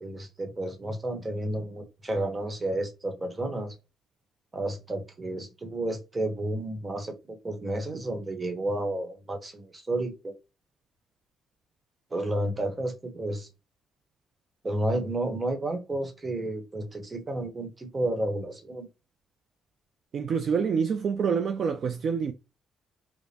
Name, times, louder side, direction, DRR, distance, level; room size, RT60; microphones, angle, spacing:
voice 1, 0.0-3.7 4.5-10.3 12.1-13.5 14.6-18.9, right 1 dB, 20° right, 1.0 m, -31 dB
voice 2, 20.1-22.3, right 6 dB, 50° right, 0.4 m, -27 dB
5.0 x 2.1 x 2.7 m
cardioid pair, 135°, 0 cm